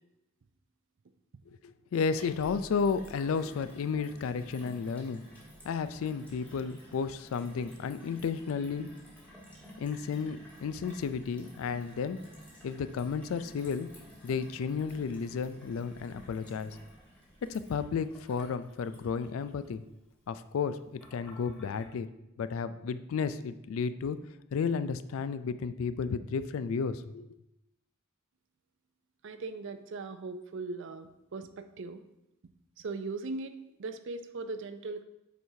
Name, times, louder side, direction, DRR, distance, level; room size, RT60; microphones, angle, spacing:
voice 1, 1.5-5.2 5.6-8.9 9.8-12.2 12.6-13.9 14.2-16.8 17.4-19.8 20.3-22.1 22.4-24.2 24.5-27.3, left 5 dB, 70° left, 12 dB, 0.3 m, -33 dB
Gurgling / Water tap faucet / Sink (filling or washing), 1.9-21.8, equal, 5° left, 1.4 m, -53 dB
voice 2, 29.2-32.0 32.8-35.0, right 3 dB, 60° right, 10 dB, 0.5 m, -39 dB
8.1 x 4.6 x 2.7 m, 0.88 s
head